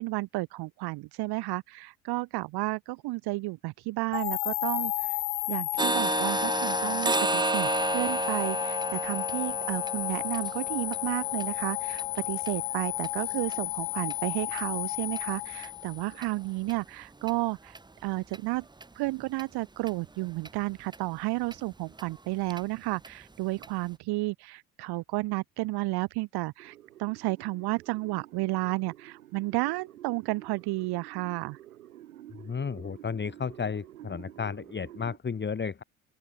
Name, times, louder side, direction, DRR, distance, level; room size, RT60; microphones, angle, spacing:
voice 1, 0.0-5.2 5.5-18.7 18.9-31.6, right 21 dB, 65° right, 2.5 m, -32 dB
sound 1, 4.1-16.3, left 35 dB, 70° left, 2.8 m, -32 dB
sound 2, 5.8-13.6 14.0-14.2 14.6-14.7 15.2-15.3 15.6-15.7 16.2-16.3 16.7-16.8 17.3-17.4 17.7-17.8 18.3-18.4 18.8-18.9 19.4-19.5 19.9-20.0 20.4-20.5 20.9-21.0 21.5-21.6 22.0-22.1 22.5-22.6 23.0-23.1 23.6-23.7, right 3 dB, 10° right, 0.9 m, -32 dB
sound 3, 26.6-35.2, right 13 dB, 85° right, 7.3 m, -50 dB
voice 2, 32.5-35.8, left 6 dB, 25° left, 1.6 m, -33 dB
open air
hypercardioid pair, 55°, 41 cm